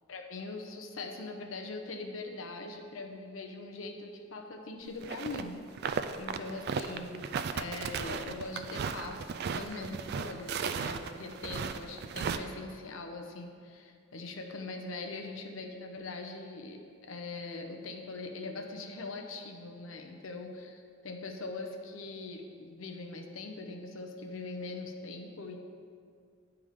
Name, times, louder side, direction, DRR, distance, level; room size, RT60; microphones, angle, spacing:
voice 1, 0.1-5.6 5.8-25.6, left 3 dB, 90° left, 3 dB, 0.8 m, -42 dB
sound 1, 5.0-5.4 5.7-12.4, right 6 dB, 55° right, 0.3 m, -35 dB
9.5 x 3.6 x 4.9 m, 2.2 s
head